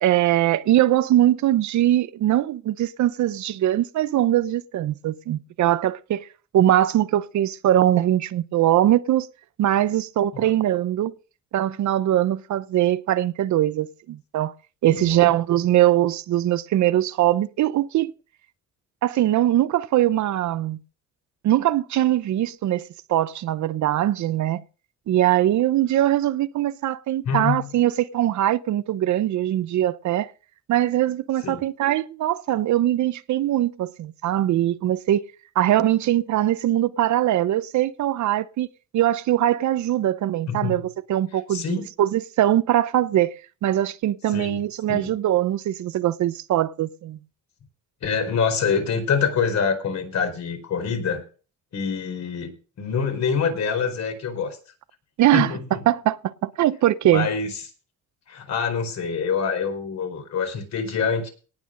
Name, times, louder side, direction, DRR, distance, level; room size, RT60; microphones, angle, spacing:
voice 1, 0.0-6.3 6.5-9.3 9.6-11.1 11.5-14.5 14.8-18.1 19.0-20.8 21.4-24.6 25.1-30.3 30.7-35.2 35.6-38.7 38.9-43.3 43.6-47.2 55.2-55.6 55.9-57.3, right 13 dB, 70° right, 0.8 m, -21 dB
voice 2, 14.9-15.2 27.2-27.7 31.4-31.6 40.5-40.7 41.5-41.9 44.3-44.6 44.9-45.1 48.0-51.2 51.7-54.6 55.3-55.8 57.1-57.5 58.3-61.3, left 6 dB, 65° left, 4.6 m, -25 dB
18.5 x 6.2 x 5.1 m
cardioid pair, 90°, 30 cm